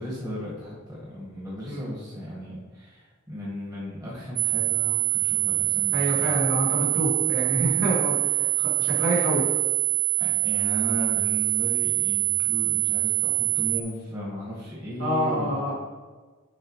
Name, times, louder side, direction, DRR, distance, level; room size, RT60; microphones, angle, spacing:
voice 1, 0.0-6.3 10.2-15.6, equal, 20° right, -6 dB, 1.6 m, -36 dB
sound 1, 4.4-13.8, right 17 dB, 90° right, 0.5 m, -24 dB
voice 2, 5.9-9.5 15.0-15.8, equal, 65° right, -6 dB, 2.0 m, -27 dB
9.1 x 4.6 x 3.1 m, 1.4 s
head